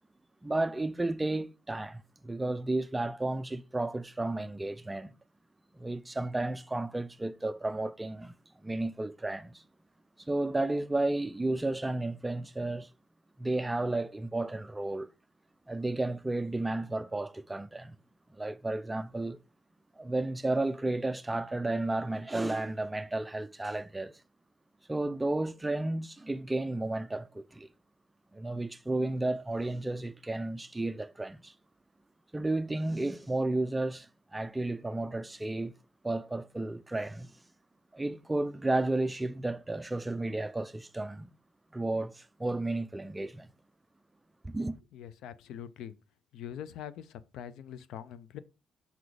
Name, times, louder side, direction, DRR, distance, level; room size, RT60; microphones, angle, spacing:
voice 1, 0.4-5.1 5.7-8.3 8.6-9.6 10.2-12.9 13.4-15.1 15.7-18.0 18.3-19.4 20.0-24.1 24.9-27.7 28.3-31.5 32.3-35.7 36.0-37.3 37.9-41.3 41.7-43.5 44.4-44.8, right 2 dB, 15° right, 0.5 m, -32 dB
voice 2, 44.9-45.9 46.3-48.4, left 9 dB, 85° left, 0.5 m, -43 dB
5.8 x 4.0 x 4.8 m
cardioid pair, 90°, 0 cm